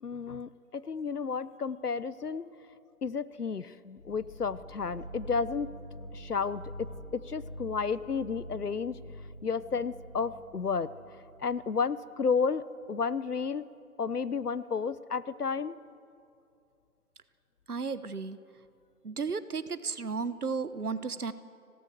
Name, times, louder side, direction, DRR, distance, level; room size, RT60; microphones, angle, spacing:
voice 1, 0.0-2.5 3.0-5.7 6.1-9.0 9.4-10.9 11.4-13.7 14.0-15.8, left 5 dB, 80° left, 17 dB, 0.9 m, -32 dB
sound 1, 4.0-11.7, right 1 dB, ahead, 2.4 m, -46 dB
voice 2, 17.7-18.4 19.0-21.3, right 5 dB, 75° right, 14 dB, 1.2 m, -34 dB
26.5 x 17.0 x 6.9 m, 2.5 s
figure-of-eight pair, 165°, 46 cm